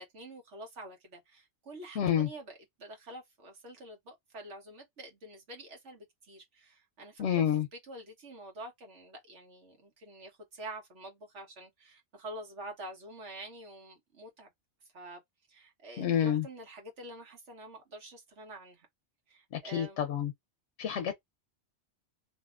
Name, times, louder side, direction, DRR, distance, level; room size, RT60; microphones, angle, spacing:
voice 1, 0.0-14.5 14.9-15.2 15.5-18.9 19.3-20.0, right 1 dB, 90° right, 1.5 m, -47 dB
voice 2, 2.0-2.3 7.2-7.7 16.0-16.4 19.5-20.3 20.8-21.2, left 9 dB, 85° left, 0.9 m, -28 dB
2.8 x 2.6 x 2.4 m
omnidirectional pair, 1.2 m